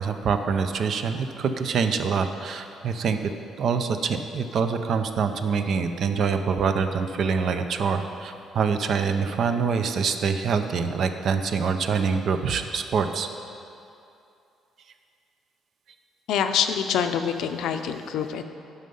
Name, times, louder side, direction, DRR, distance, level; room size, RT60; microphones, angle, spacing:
voice 1, 0.0-3.2 3.6-13.3, right 5 dB, 50° right, 8 dB, 0.6 m, -25 dB
voice 2, 16.3-18.4, left 8 dB, 80° left, 7 dB, 0.5 m, -25 dB
11.0 x 5.5 x 5.4 m, 2.7 s
cardioid pair, 145°, 0 cm